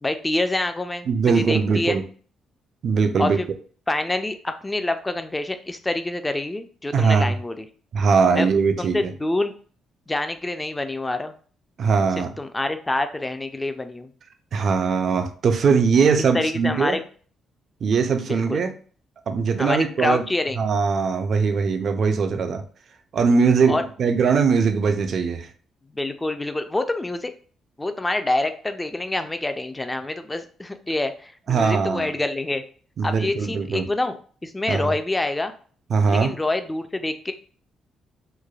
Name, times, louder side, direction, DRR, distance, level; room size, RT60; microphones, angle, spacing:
voice 1, 0.0-1.1 1.3-2.0 3.2-3.5 3.9-7.7 8.3-8.5 8.8-9.5 10.1-11.3 12.2-14.1 16.3-17.0 18.3-18.6 19.6-20.6 23.7-23.8 25.9-27.3 27.8-32.6 33.0-35.5 36.1-37.3, left 2 dB, 15° left, 8 dB, 0.3 m, -26 dB
voice 2, 1.1-2.0 2.8-3.4 6.9-7.3 7.9-9.1 11.8-12.3 14.5-17.0 17.8-18.7 19.3-20.2 20.6-22.6 23.1-25.5 31.5-32.1 33.0-33.9 34.7-34.9 35.9-36.3, right 5 dB, 55° right, 7 dB, 0.4 m, -21 dB
3.1 x 2.1 x 2.3 m, 0.43 s
cardioid pair, 90°, 0 cm